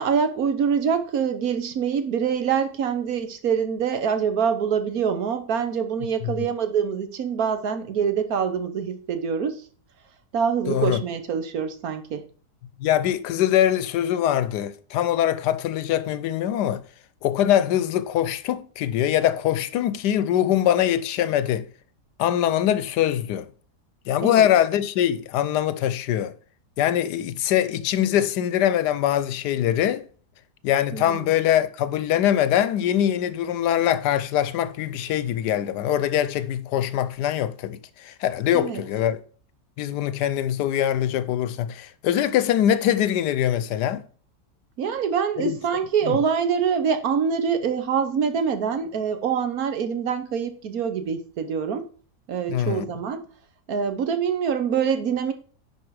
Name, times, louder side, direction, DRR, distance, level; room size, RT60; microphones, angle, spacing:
voice 1, 0.0-9.5 10.3-12.2 24.2-24.5 30.9-31.3 38.5-38.8 44.8-51.8 52.3-53.3 53.7-55.3, right 7 dB, 65° right, 1.4 m, -25 dB
voice 2, 10.7-11.0 12.8-16.8 17.2-21.7 22.2-23.5 24.1-26.3 26.8-30.1 30.6-39.2 39.8-44.0 45.4-45.6 46.0-46.2 52.5-52.9, left 11 dB, 85° left, 1.2 m, -23 dB
9.9 x 4.9 x 4.7 m
omnidirectional pair, 1.7 m